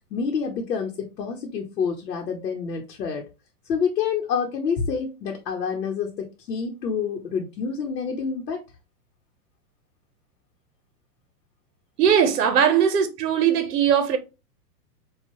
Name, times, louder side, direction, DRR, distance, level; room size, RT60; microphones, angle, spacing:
voice 1, 0.1-3.2 3.7-8.6, left 6 dB, 90° left, 1.0 m, -27 dB
voice 2, 12.0-14.2, right 8 dB, 70° right, 0.8 m, -19 dB
4.6 x 2.4 x 3.0 m
hypercardioid pair, 125°, 49 cm